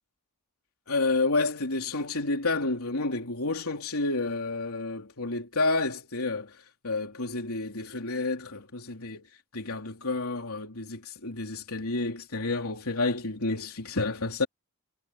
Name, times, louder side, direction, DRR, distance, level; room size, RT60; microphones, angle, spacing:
voice 1, 0.9-6.6 6.8-9.3 9.5-14.5, left 3 dB, 80° left, 3.4 m, -30 dB
head